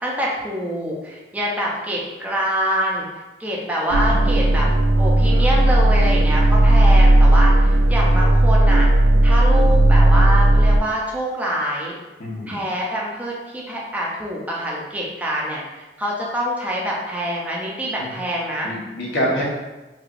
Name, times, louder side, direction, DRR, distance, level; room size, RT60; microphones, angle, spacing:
voice 1, 0.0-3.0 3.4-4.7 5.0-8.9 9.2-12.0 12.5-18.7, equal, 10° right, -4 dB, 0.4 m, -25 dB
sound 1, 3.9-10.8, right 1 dB, 80° right, 0.3 m, -14 dB
voice 2, 4.0-4.6 12.2-12.6 18.0-18.1 18.6-19.4, equal, 75° left, -6 dB, 1.1 m, -27 dB
3.1 x 2.9 x 2.4 m, 1.1 s
head